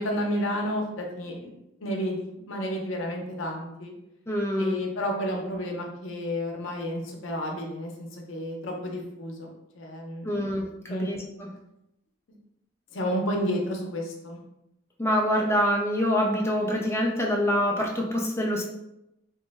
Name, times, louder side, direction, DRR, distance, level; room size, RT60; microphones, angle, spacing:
voice 1, 0.0-1.5 1.8-3.9 4.6-9.5 9.8-10.4 10.9-11.1 12.9-14.4, equal, 75° left, 1 dB, 0.6 m, -31 dB
voice 2, 4.3-4.8 10.2-11.5 15.0-18.6, equal, 15° left, -1 dB, 0.4 m, -25 dB
3.0 x 2.1 x 3.4 m, 0.86 s
head